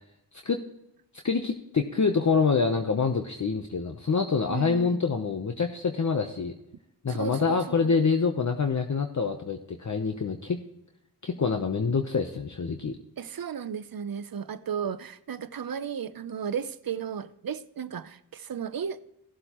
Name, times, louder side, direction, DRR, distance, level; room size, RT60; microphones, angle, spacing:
voice 1, 1.2-6.5 7.0-10.6 11.2-13.0, left 5 dB, 45° left, 0.9 m, -26 dB
voice 2, 4.5-5.0 7.1-7.9 13.2-19.0, right 7 dB, 60° right, 0.7 m, -34 dB
16.5 x 7.7 x 3.0 m
cardioid pair, 60°, 41 cm